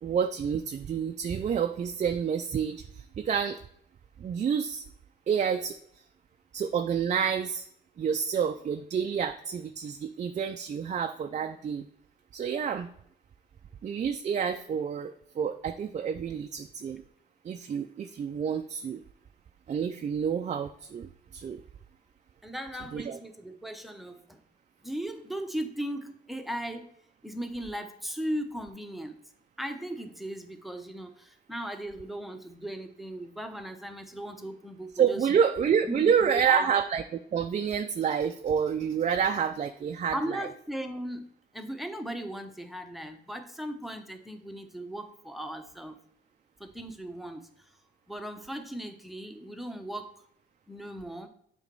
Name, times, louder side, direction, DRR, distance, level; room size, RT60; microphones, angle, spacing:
voice 1, 0.0-3.6 4.2-4.8 5.3-5.8 6.5-7.7 8.0-11.9 12.3-12.9 13.8-17.0 17.4-19.0 19.7-21.6 22.9-23.2 34.9-37.0 37.3-40.5, right 7 dB, 35° right, 6 dB, 0.4 m, -28 dB
voice 2, 22.4-24.4 24.8-26.9 27.2-29.2 29.6-35.3 35.9-36.8 40.1-46.0 46.6-47.7 48.1-50.1 50.7-51.3, right 1 dB, ahead, 7 dB, 0.8 m, -37 dB
7.2 x 3.0 x 5.3 m, 0.70 s
cardioid pair, 90°, 20 cm